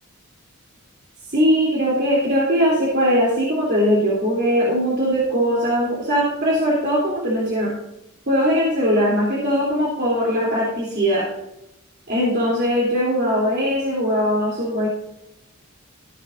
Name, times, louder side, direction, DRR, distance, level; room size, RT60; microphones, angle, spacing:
voice 1, 1.3-7.7 8.3-11.2 12.1-14.9, equal, 50° right, -6 dB, 3.0 m, -20 dB
15.0 x 8.3 x 2.6 m, 0.86 s
head